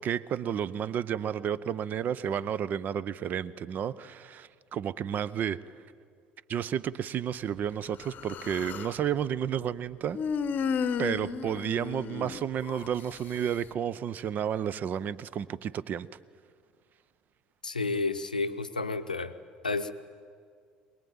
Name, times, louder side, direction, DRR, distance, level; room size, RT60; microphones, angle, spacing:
voice 1, 0.0-5.6 6.5-10.2 11.0-16.1, right 9 dB, 40° right, 20 dB, 0.6 m, -31 dB
Human voice, 8.0-9.0 10.1-12.9, left 6 dB, 40° left, 0.8 m, -33 dB
voice 2, 17.6-19.3 19.6-19.9, left 3 dB, 85° left, 9 dB, 0.7 m, -31 dB
22.5 x 20.5 x 8.7 m, 2.2 s
figure-of-eight pair, 60°, 4 cm